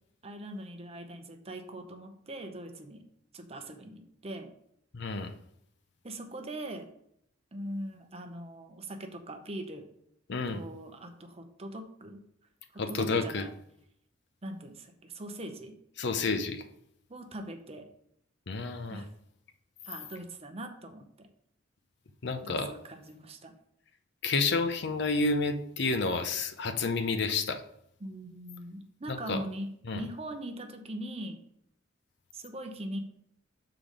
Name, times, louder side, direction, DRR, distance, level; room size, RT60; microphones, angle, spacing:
voice 1, 0.2-3.0 3.3-4.5 6.0-6.9 7.5-9.9 10.5-12.2 12.7-13.5 14.4-15.7 17.1-17.9 18.9-19.1 19.8-21.3 22.4-23.5 28.0-29.7 29.9-31.4 32.3-33.0, right 1 dB, 30° right, 6 dB, 0.8 m, -41 dB
voice 2, 4.9-5.3 10.3-10.6 12.8-13.4 16.0-16.6 18.5-19.0 22.2-22.7 24.2-27.6 29.1-29.4 29.9-30.0, left 3 dB, 60° left, 8 dB, 0.7 m, -30 dB
6.9 x 3.9 x 5.0 m, 0.72 s
head